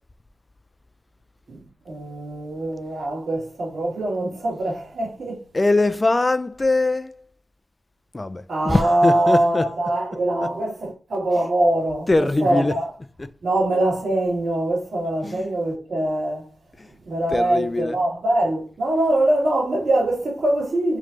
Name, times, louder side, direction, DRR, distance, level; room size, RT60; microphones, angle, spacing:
voice 1, 1.8-5.4 8.5-12.1 12.4-12.9 13.4-16.5 17.0-21.0, right 1 dB, 75° right, 1.8 m, -23 dB
voice 2, 5.5-7.3 8.1-9.7 10.4-10.5 12.1-12.8 13.2-13.3 15.2-15.5 16.8-16.9 17.3-18.0, left 2 dB, 30° left, 0.4 m, -22 dB
3.2 x 3.2 x 3.7 m
cardioid pair, 50°, 0 cm